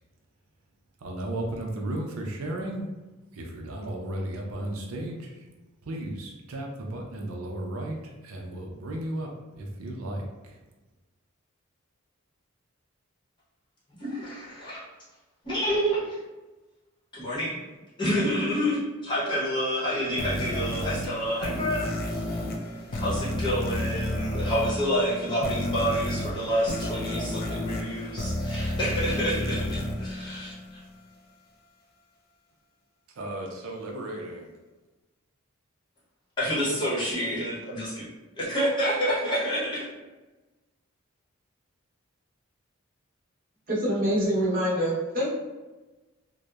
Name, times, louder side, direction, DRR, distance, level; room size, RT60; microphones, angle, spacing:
voice 1, 1.0-2.9 3.3-5.4 5.9-10.6 33.2-34.5, right 1 dB, 85° right, 0 dB, 0.5 m, -34 dB
voice 2, 14.0-14.8 15.4-16.2 17.1-17.6 18.0-22.4 22.9-30.5 36.4-38.1 38.4-39.9, equal, 20° left, -8 dB, 0.8 m, -28 dB
sound 1, 20.2-31.0, left 1 dB, 45° left, 0.3 m, -31 dB
voice 3, 43.7-45.3, equal, 40° right, -6 dB, 0.8 m, -25 dB
2.8 x 2.0 x 2.2 m, 1.2 s
head